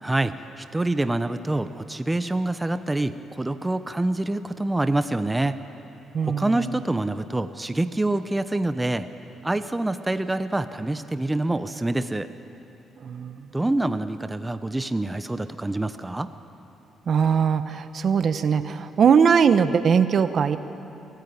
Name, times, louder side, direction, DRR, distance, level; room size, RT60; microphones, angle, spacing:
voice 1, 0.0-5.6 6.2-9.1 9.4-12.3 13.5-16.3, right 2 dB, 15° right, 11 dB, 0.8 m, -26 dB
voice 2, 6.1-6.7 13.0-13.5 17.1-20.6, right 6 dB, 55° right, 11 dB, 0.9 m, -21 dB
23.0 x 15.0 x 9.6 m, 2.9 s
cardioid pair, 90°, 0 cm